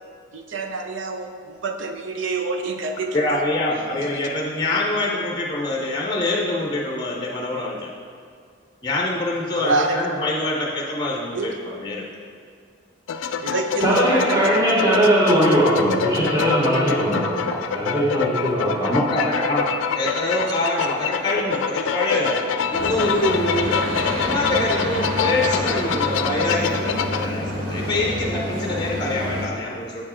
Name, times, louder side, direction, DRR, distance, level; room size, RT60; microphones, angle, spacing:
voice 1, 0.3-3.4 9.5-10.0 11.3-11.5 13.4-14.4, right 3 dB, 65° right, 4 dB, 0.6 m, -27 dB
voice 2, 3.1-7.9 8.8-12.0 18.8-23.7 24.2-30.0, left 2 dB, 20° left, -2 dB, 0.6 m, -25 dB
sound 1, 13.1-27.3, left 6 dB, 70° left, 0.3 m, -26 dB
voice 3, 13.8-17.4 17.7-18.9, right 1 dB, 20° right, -7 dB, 1.2 m, -19 dB
sound 2, 22.2-27.6, right 2 dB, 85° right, 1.0 m, -35 dB
sound 3, 22.7-29.5, equal, 45° right, 0.9 m, -28 dB
8.2 x 4.5 x 4.3 m, 2.2 s
head